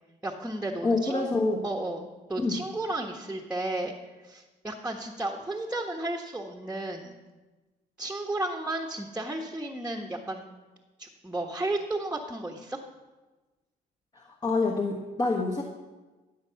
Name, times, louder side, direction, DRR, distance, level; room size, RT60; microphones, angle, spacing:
voice 1, 0.2-1.3 1.6-3.9 4.2-7.1 8.0-10.4 11.0-12.8, right 2 dB, 5° right, 0 dB, 1.3 m, -33 dB
voice 2, 0.8-1.6 2.4-2.6 14.1-15.6, left 3 dB, 25° left, 1 dB, 1.4 m, -27 dB
17.5 x 7.5 x 5.8 m, 1.2 s
cardioid pair, 110°, 17 cm